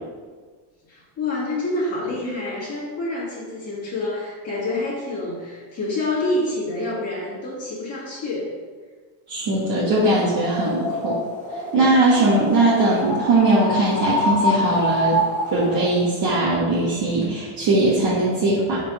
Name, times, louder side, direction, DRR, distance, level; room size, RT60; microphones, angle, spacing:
voice 1, 0.9-8.5, left 2 dB, 35° left, -7 dB, 1.8 m, -27 dB
voice 2, 9.3-11.2 11.7-15.2 15.5-18.8, right 2 dB, 50° right, -8 dB, 1.5 m, -20 dB
sound 1, 10.1-15.9, left 1 dB, 15° left, 0.9 m, -26 dB
5.4 x 4.4 x 5.2 m, 1.5 s
cardioid pair, 160°, 46 cm